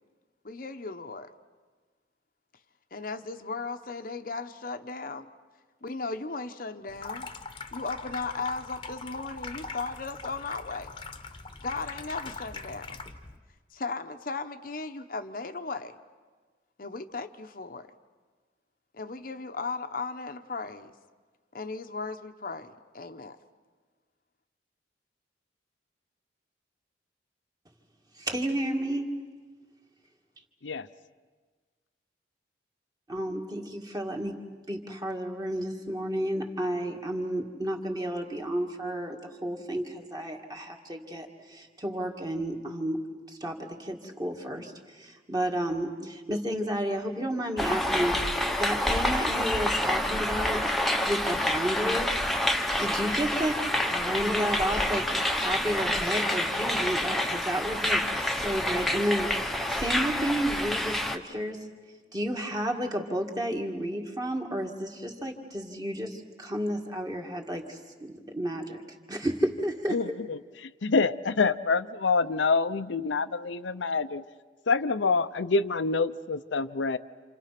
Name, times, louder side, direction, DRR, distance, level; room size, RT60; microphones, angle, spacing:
voice 1, 0.4-1.3 2.9-5.3 5.8-7.3 7.7-10.9 11.6-13.0 13.7-16.0 16.8-17.9 18.9-20.9 21.5-23.4, left 3 dB, 50° left, 8 dB, 0.8 m, -36 dB
Water tap faucet / Sink (filling or washing), 6.9-13.4, left 4 dB, 25° left, 1.0 m, -41 dB
voice 2, 28.2-29.1 33.1-34.4 34.7-43.0 43.3-50.7 51.0-52.1 52.4-61.7 62.1-68.8 69.1-70.0, right 1 dB, 20° right, 2 dB, 2.1 m, -32 dB
sound 1, 47.6-61.2, left 1 dB, ahead, 1.0 m, -28 dB
voice 3, 69.9-74.2 74.7-77.0, left 4 dB, 85° left, 11 dB, 0.7 m, -27 dB
28.0 x 28.0 x 5.9 m, 1.4 s
head